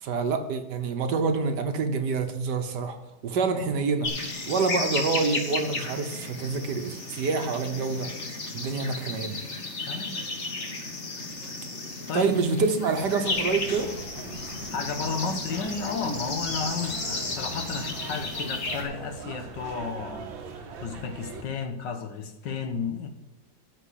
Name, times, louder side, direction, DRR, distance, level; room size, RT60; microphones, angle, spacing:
voice 1, 0.0-3.0 3.2-4.1 4.5-8.1 8.5-9.4 12.1-13.9, right 4 dB, 65° right, 1.5 m, -27 dB
sound 1, 4.0-18.8, left 2 dB, 40° left, 1.7 m, -34 dB
voice 2, 9.9-10.2 12.1-12.4 14.7-23.1, left 5 dB, 70° left, 1.7 m, -33 dB
sound 2, 13.2-21.4, right 5 dB, 85° right, 1.8 m, -41 dB
13.0 x 4.6 x 8.3 m
omnidirectional pair, 2.1 m